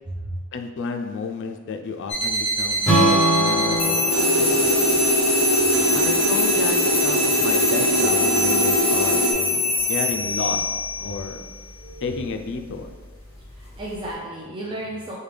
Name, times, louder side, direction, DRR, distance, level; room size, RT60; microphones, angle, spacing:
voice 1, 0.5-4.8 5.9-10.6 11.0-11.4 12.0-12.9, left 4 dB, 60° left, 6 dB, 0.4 m, -31 dB
sound 1, 2.1-14.1, left 2 dB, 30° left, 1.0 m, -25 dB
Strum, 2.8-7.0, right 1 dB, 5° left, 0.7 m, -24 dB
sound 2, 4.1-9.3, right 2 dB, 65° right, 0.6 m, -22 dB
voice 2, 13.4-15.2, right 1 dB, 25° right, -5 dB, 0.4 m, -34 dB
4.9 x 2.2 x 3.3 m, 1.4 s
head